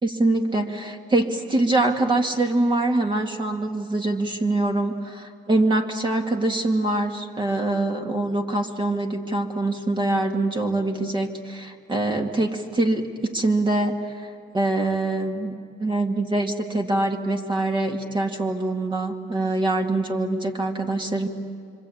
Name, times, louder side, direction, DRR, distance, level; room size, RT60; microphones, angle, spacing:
voice 1, 0.0-14.3 14.5-15.5 15.8-21.3, right 2 dB, 30° right, 3 dB, 2.4 m, -24 dB
26.0 x 25.5 x 8.7 m, 2.2 s
cardioid pair, 110°, 17 cm